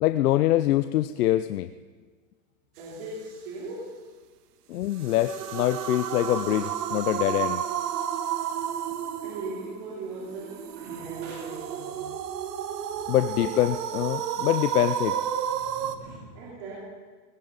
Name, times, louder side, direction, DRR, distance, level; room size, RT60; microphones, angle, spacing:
voice 1, 0.0-1.7 4.7-7.6 13.1-15.2, left 14 dB, 70° left, 10 dB, 0.6 m, -24 dB
voice 2, 2.8-4.0 9.2-12.3 15.4-16.8, right 2 dB, 40° right, -6 dB, 3.5 m, -39 dB
sound 1, 4.9-16.0, right 9 dB, 75° right, 1.3 m, -32 dB
18.5 x 15.5 x 4.0 m, 1.5 s
supercardioid pair, 175°, 47 cm